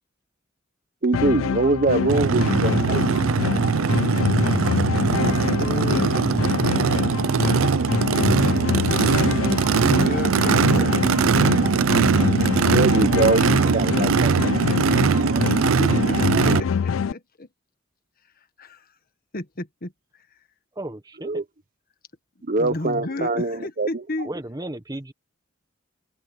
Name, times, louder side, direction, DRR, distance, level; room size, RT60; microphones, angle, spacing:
voice 1, 1.0-3.0 3.3-3.7 10.5-10.6 12.7-14.6 15.1-15.8 16.3-16.6 21.2-21.4 22.4-24.0, right 3 dB, 45° right, 0.9 m, -24 dB
sound 1, 1.1-17.1, left 6 dB, 80° left, 0.4 m, -26 dB
Race car auto racing / Idling / Accelerating revving vroom, 2.1-16.6, right 5 dB, 85° right, 0.5 m, -21 dB
voice 2, 5.6-6.4 9.7-11.9 13.9-14.1 15.1-17.5 18.6-18.8 19.3-19.9 22.6-24.3 24.9-25.0, left 2 dB, 45° left, 1.5 m, -33 dB
voice 3, 20.8-21.3 24.2-25.1, right 1 dB, 20° right, 1.3 m, -34 dB
head